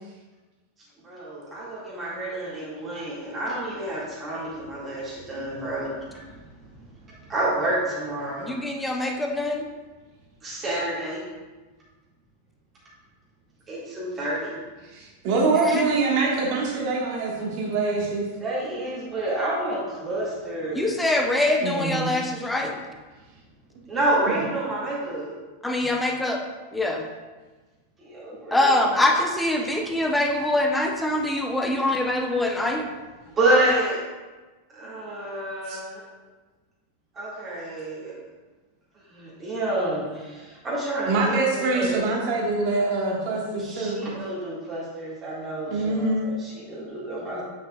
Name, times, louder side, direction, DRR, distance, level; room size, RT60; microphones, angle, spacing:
voice 1, 1.0-5.9 7.3-8.6 10.4-11.2 13.7-14.5 18.4-21.0 23.9-25.3 28.0-29.0 33.4-34.0 34.8-36.0 37.2-38.2 39.1-41.4 41.7-42.0 43.6-47.4, right 1 dB, 25° right, -7 dB, 2.0 m, -28 dB
voice 2, 8.4-9.6 15.6-15.8 20.7-22.7 25.6-26.4 26.7-27.0 28.5-32.8, left 1 dB, 5° left, 2 dB, 0.8 m, -24 dB
voice 3, 14.9-18.2 21.6-22.1 24.3-24.4 35.7-35.8 41.1-44.1 45.6-46.3, right 3 dB, 45° right, -2 dB, 1.6 m, -24 dB
8.1 x 5.8 x 2.4 m, 1.3 s
figure-of-eight pair, 90°, 0 cm